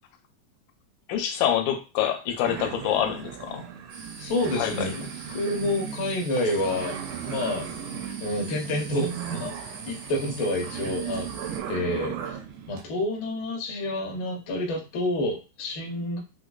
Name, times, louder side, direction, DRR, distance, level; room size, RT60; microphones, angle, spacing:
voice 1, 1.1-3.7 4.6-4.9, left 10 dB, 85° left, 2.0 m, -26 dB
sound 1, 2.4-12.8, right 9 dB, 80° right, 1.5 m, -37 dB
sound 2, 3.9-11.6, right 3 dB, 65° right, 0.8 m, -43 dB
voice 2, 4.2-7.0 7.3-7.7 8.2-9.5 9.9-11.3 11.7-12.4 12.7-16.2, left 1 dB, 70° left, 1.2 m, -28 dB
4.8 x 2.2 x 2.3 m
omnidirectional pair, 3.3 m